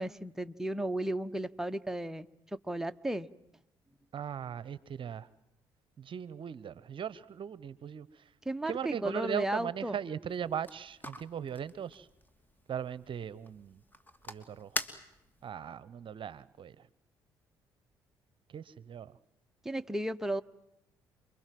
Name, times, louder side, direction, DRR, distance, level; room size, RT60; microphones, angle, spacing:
voice 1, 0.0-2.3 2.7-3.3 8.4-10.0 19.6-20.4, right 1 dB, 5° right, 9 dB, 1.2 m, -34 dB
voice 2, 4.1-5.3 6.0-8.1 8.7-12.1 12.7-13.8 14.3-14.7 15.4-16.7 18.5-19.1, right 8 dB, 50° right, 19 dB, 1.0 m, -38 dB
sound 1, 10.3-15.5, left 1 dB, 15° left, 2.9 m, -44 dB
28.5 x 23.0 x 7.8 m, 0.85 s
hypercardioid pair, 50°, 11 cm